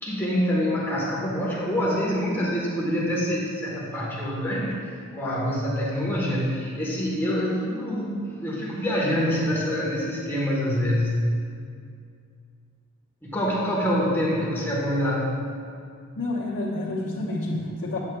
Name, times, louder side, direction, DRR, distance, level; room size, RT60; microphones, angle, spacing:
voice 1, 0.0-11.2 13.2-15.4, equal, 10° left, -6 dB, 1.2 m, -26 dB
voice 2, 16.2-18.0, left 2 dB, 60° left, -9 dB, 1.2 m, -29 dB
11.0 x 8.0 x 2.3 m, 2.3 s
head